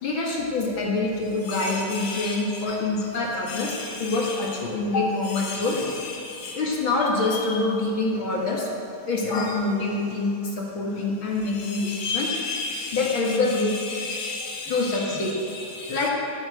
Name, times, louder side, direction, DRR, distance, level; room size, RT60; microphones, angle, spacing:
voice 1, 0.0-5.8 6.5-8.7 9.1-12.3 12.9-13.7 14.7-15.4 15.9-16.1, left 3 dB, 65° left, -2 dB, 2.6 m, -25 dB
voice 2, 1.5-2.4 2.7-2.8 3.5-4.3 5.5-5.9 6.4-6.5 9.3-9.5 11.7-13.4 13.7-15.2 15.5-16.0, left 4 dB, 50° left, -3 dB, 2.2 m, -33 dB
15.0 x 7.4 x 8.3 m, 2.8 s
omnidirectional pair, 2.4 m